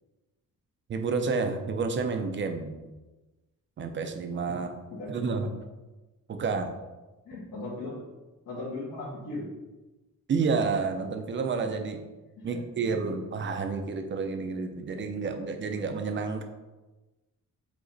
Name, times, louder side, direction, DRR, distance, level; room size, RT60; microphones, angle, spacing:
voice 1, 0.9-2.8 3.8-4.7 5.1-5.5 6.3-6.7 10.3-12.0 12.4-16.4, right 4 dB, 35° right, 6 dB, 0.6 m, -30 dB
voice 2, 4.9-5.5 6.5-6.6 7.3-8.0 8.5-9.5 12.4-12.6, left 2 dB, 80° left, -9 dB, 1.9 m, -38 dB
8.0 x 3.0 x 4.0 m, 1.1 s
wide cardioid pair, 170°, 32 cm